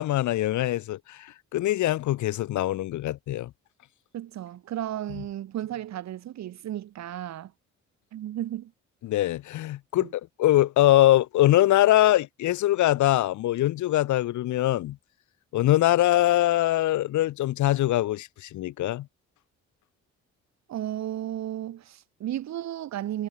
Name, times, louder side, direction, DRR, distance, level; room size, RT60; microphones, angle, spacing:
voice 1, 0.0-3.5 9.0-15.0 15.5-19.1, left 14 dB, 75° left, 0.9 m, -23 dB
voice 2, 4.1-7.5 8.1-8.7 10.0-10.1 20.7-23.3, right 12 dB, 65° right, 1.1 m, -34 dB
cardioid pair, 90°, 30 cm